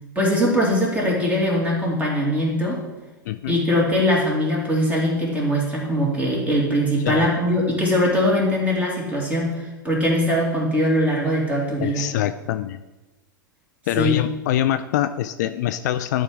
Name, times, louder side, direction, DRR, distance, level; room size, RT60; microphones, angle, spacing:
voice 1, 0.1-2.8 3.5-12.1 14.0-14.2, equal, 15° right, -3 dB, 2.6 m, -21 dB
voice 2, 3.3-3.6 7.0-7.3 11.8-12.8 13.9-16.2, left 12 dB, 55° left, 11 dB, 0.4 m, -24 dB
11.5 x 3.8 x 4.7 m, 1.1 s
figure-of-eight pair, 95°, 11 cm